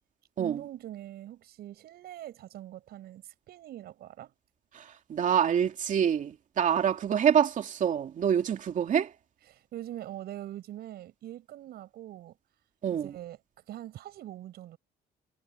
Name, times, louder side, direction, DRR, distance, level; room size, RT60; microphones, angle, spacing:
voice 1, 0.4-4.3 9.5-12.4 13.0-13.4 13.7-14.8, right 13 dB, 70° right, 7.6 m, -43 dB
voice 2, 4.7-9.1 12.8-13.2, right 8 dB, 50° right, 2.7 m, -26 dB
cardioid pair, 110°, 17 cm